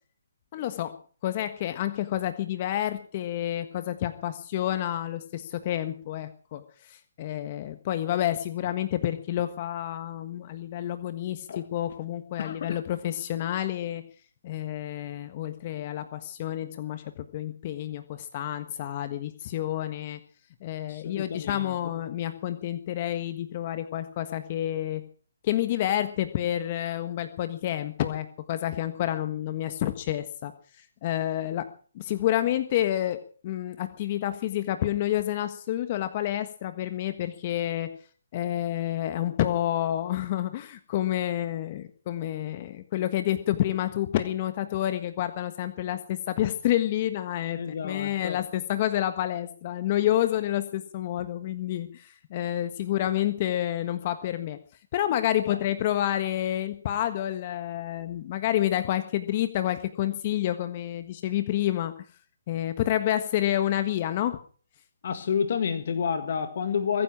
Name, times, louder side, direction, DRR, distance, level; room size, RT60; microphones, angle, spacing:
voice 1, 0.5-1.0 1.2-14.0 14.4-20.2 20.6-25.0 25.4-30.5 30.8-31.7 31.9-37.9 38.3-54.6 54.9-61.9 62.5-64.4, left 12 dB, 35° left, 9 dB, 1.4 m, -29 dB
voice 2, 12.4-12.8 20.9-21.7 47.5-48.4 55.5-55.6 65.0-67.0, left 7 dB, 55° left, 8 dB, 1.8 m, -29 dB
23.0 x 10.0 x 6.0 m, 0.43 s
hypercardioid pair, 150°, 0 cm